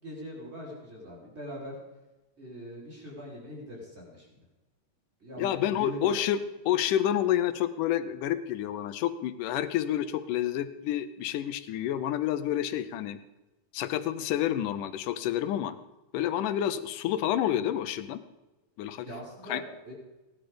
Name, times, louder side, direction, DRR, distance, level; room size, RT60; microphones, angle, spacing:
voice 1, 0.0-1.8 2.4-4.4 5.2-6.2 19.0-19.9, equal, 20° right, -4 dB, 4.9 m, -42 dB
voice 2, 5.4-6.4 6.7-13.2 13.7-15.8 16.1-18.2 18.8-19.1 19.5-19.6, left 11 dB, 80° left, 12 dB, 2.3 m, -29 dB
17.5 x 11.5 x 5.2 m, 1.1 s
omnidirectional pair, 3.7 m